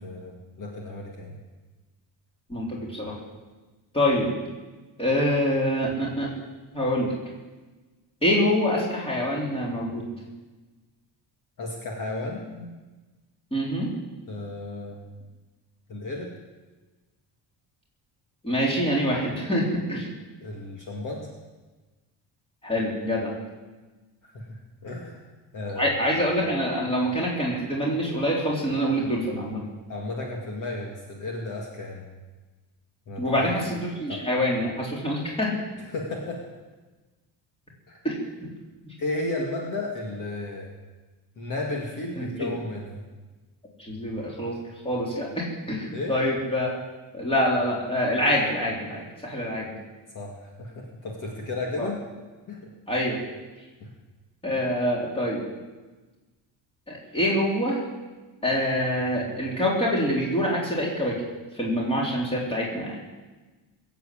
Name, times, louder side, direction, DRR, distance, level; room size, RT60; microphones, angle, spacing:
voice 1, 0.0-1.4 11.6-12.5 14.3-15.1 15.9-16.3 20.4-21.3 24.2-25.3 25.5-26.0 29.9-32.1 33.1-33.4 34.1-34.2 35.8-36.4 37.9-38.0 39.0-40.7 41.4-43.0 45.9-46.1 50.1-52.0 52.5-52.7 53.8-53.9, left 2 dB, 40° left, 0 dB, 2.2 m, -33 dB
voice 2, 2.5-3.2 3.9-4.3 5.0-6.3 6.7-7.1 8.2-10.1 13.5-13.9 18.4-20.1 22.6-23.3 25.8-29.6 33.2-35.5 38.0-38.1 38.9-39.0 42.2-42.5 43.8-44.6 44.8-46.7 47.1-49.7 51.8-51.9 52.9-53.2 54.4-55.4 56.9-57.8 58.4-61.2 61.6-63.0, equal, 10° left, -3 dB, 3.7 m, -25 dB
20.0 x 8.2 x 8.7 m, 1.2 s
cardioid pair, 175°, 46 cm